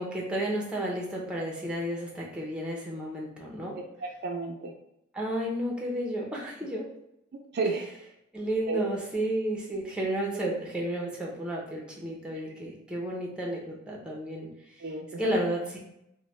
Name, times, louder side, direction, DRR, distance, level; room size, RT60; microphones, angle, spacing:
voice 1, 0.0-3.8 5.1-6.9 8.3-14.5 15.2-15.8, right 1 dB, 5° right, -3 dB, 0.6 m, -32 dB
voice 2, 3.7-4.7 7.5-7.8 8.7-8.8 10.3-10.5 14.8-15.4, right 3 dB, 55° right, 2 dB, 0.4 m, -32 dB
3.0 x 2.1 x 3.1 m, 0.81 s
head